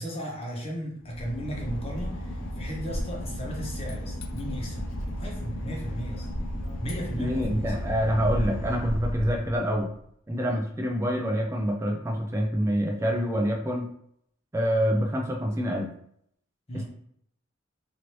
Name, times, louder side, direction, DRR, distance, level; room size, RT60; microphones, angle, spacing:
voice 1, 0.0-6.3 6.8-7.7 16.7-16.9, equal, 30° left, -2 dB, 0.9 m, -36 dB
Boat Water vehicle / Engine, 1.0-10.0, equal, 80° left, 0.5 m, -33 dB
voice 2, 7.2-9.9 10.3-13.9 14.5-15.9 16.7-16.9, equal, 15° right, 1 dB, 0.3 m, -26 dB
3.1 x 2.6 x 3.0 m, 0.70 s
head